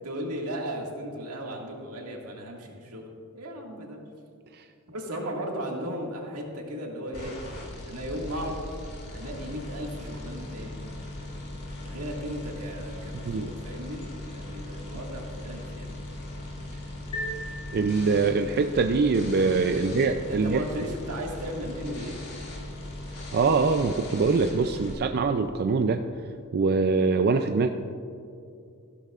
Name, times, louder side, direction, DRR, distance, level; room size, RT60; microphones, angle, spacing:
voice 1, 0.0-3.0 3.3-4.0 4.9-7.3 7.9-8.7 9.1-10.8 11.8-15.9 19.7-19.9 20.3-22.2, equal, 80° right, -1 dB, 1.9 m, -36 dB
sound 1, 7.1-24.9, left 1 dB, 90° left, 2.6 m, -39 dB
sound 2, 17.1-18.6, equal, 70° left, 2.6 m, -37 dB
voice 2, 17.7-20.6 23.3-26.0 26.5-27.7, right 4 dB, 45° right, 7 dB, 0.4 m, -23 dB
15.0 x 12.0 x 2.4 m, 2.6 s
head